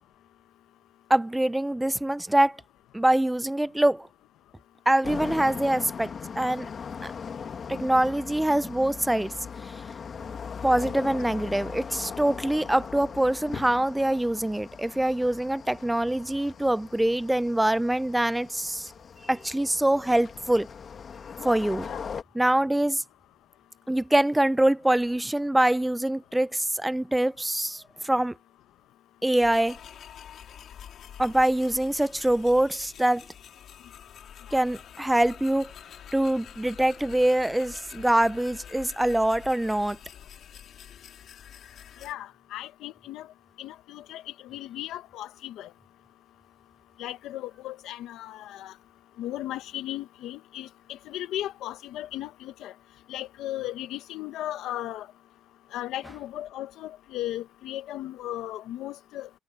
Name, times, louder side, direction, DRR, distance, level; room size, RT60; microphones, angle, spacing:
voice 1, 1.1-2.6 2.9-4.1 4.9-6.7 7.0-7.1 7.7-9.3 10.6-18.9 19.2-20.7 21.4-21.9 22.3-23.0 23.9-28.3 29.2-29.8 31.2-33.2 34.5-35.7 36.1-40.0, right 1 dB, 10° right, 0.4 m, -24 dB
sound 1, 5.0-22.2, left 6 dB, 50° left, 2.1 m, -39 dB
sound 2, 29.4-42.1, left 9 dB, 70° left, 4.4 m, -47 dB
voice 2, 42.0-43.3 43.6-45.7 47.0-48.7 49.2-52.7 53.1-55.1 55.7-59.3, left 13 dB, 85° left, 1.2 m, -36 dB
cardioid pair, 90°, 0 cm